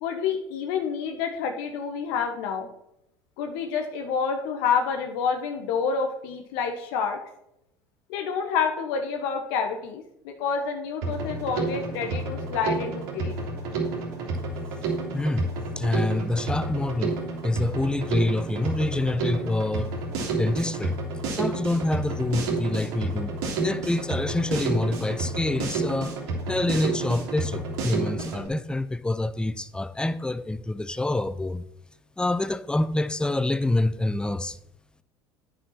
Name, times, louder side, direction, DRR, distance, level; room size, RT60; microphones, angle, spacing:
voice 1, 0.0-2.7 3.4-7.2 8.1-13.3, left 6 dB, 70° left, 1.3 m, -28 dB
Drum kit, 11.0-28.5, right 3 dB, 70° right, 3.0 m, -30 dB
voice 2, 15.1-20.0 20.3-21.0 21.3-31.6 32.2-34.6, left 2 dB, 5° left, 0.6 m, -27 dB
9.2 x 6.4 x 5.8 m
hypercardioid pair, 70°, 12 cm